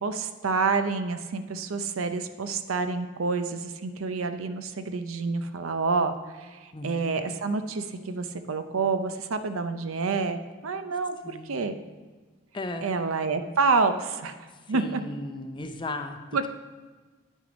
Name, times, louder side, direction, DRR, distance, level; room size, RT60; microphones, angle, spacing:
voice 1, 0.0-11.7 12.8-14.3 14.7-15.0 16.3-16.5, right 4 dB, 85° right, 9 dB, 0.6 m, -28 dB
voice 2, 11.2-11.7 12.5-12.9 14.7-16.2, left 2 dB, 25° left, 6 dB, 0.6 m, -36 dB
9.5 x 6.2 x 5.1 m, 1.3 s
head